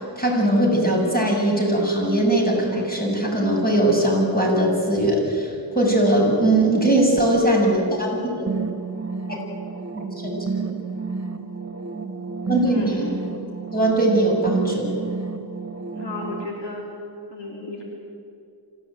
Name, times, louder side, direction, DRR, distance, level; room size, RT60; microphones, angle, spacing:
voice 1, 0.0-8.6 10.2-10.3 10.6-10.8 12.5-13.2 13.7-14.9, right 1 dB, 20° left, -1 dB, 7.6 m, -20 dB
sound 1, 8.5-16.4, right 4 dB, 35° right, 2.0 m, -31 dB
voice 2, 12.7-13.2 16.0-16.8 17.3-17.8, left 3 dB, 65° left, -1 dB, 4.3 m, -33 dB
26.5 x 16.0 x 9.3 m, 2.4 s
cardioid pair, 65°, 45 cm